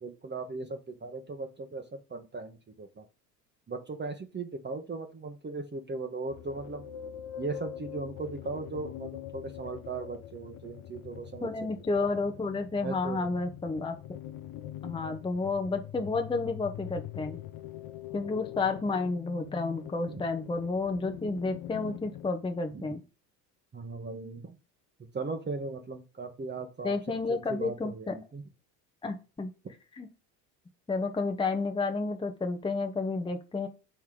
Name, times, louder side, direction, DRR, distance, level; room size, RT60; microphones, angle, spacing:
voice 1, 0.0-3.1 3.7-6.9 7.4-11.5 12.0-12.1 12.8-13.4 20.1-20.2 22.7-22.9 23.7-24.6 25.1-28.4, right 3 dB, 20° right, 4 dB, 1.1 m, -38 dB
sound 1, 6.3-22.3, left 12 dB, 45° left, 0.7 m, -43 dB
voice 2, 11.4-13.9 14.8-17.4 18.1-23.0 26.8-28.1 29.0-29.5 30.0-30.1 30.9-33.7, left 3 dB, 10° left, 5 dB, 0.8 m, -31 dB
7.8 x 3.5 x 4.9 m, 0.31 s
hypercardioid pair, 70°, 49 cm